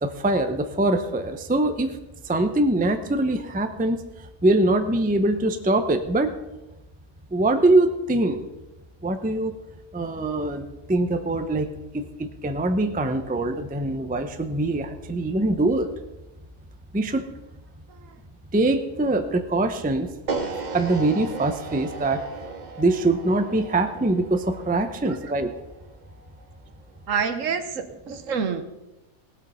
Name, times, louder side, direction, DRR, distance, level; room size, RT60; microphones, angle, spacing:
voice 1, 0.0-2.0 2.2-6.3 7.3-8.4 9.0-9.5 9.9-11.7 11.9-15.9 16.9-17.3 18.5-20.1 20.7-22.2 22.8-25.5, right 2 dB, 10° right, 8 dB, 0.5 m, -23 dB
sound 1, 20.3-26.4, right 4 dB, 35° right, 0.9 m, -36 dB
voice 2, 27.1-28.7, right 6 dB, 60° right, 10 dB, 1.3 m, -28 dB
18.0 x 7.9 x 5.6 m, 1.0 s
omnidirectional pair, 1.5 m